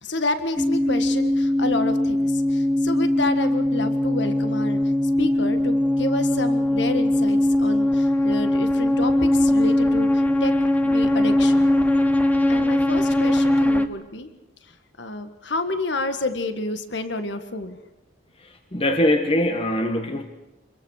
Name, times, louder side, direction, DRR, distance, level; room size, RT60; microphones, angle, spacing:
voice 1, 0.0-4.8 5.2-10.5 10.8-11.7 12.5-14.3 15.0-17.8, left 2 dB, 70° left, 9 dB, 1.7 m, -29 dB
sound 1, 0.6-13.9, left 1 dB, 10° left, 1.1 m, -20 dB
voice 2, 18.4-20.2, left 1 dB, 30° left, 6 dB, 1.5 m, -22 dB
26.5 x 22.0 x 6.5 m, 0.95 s
head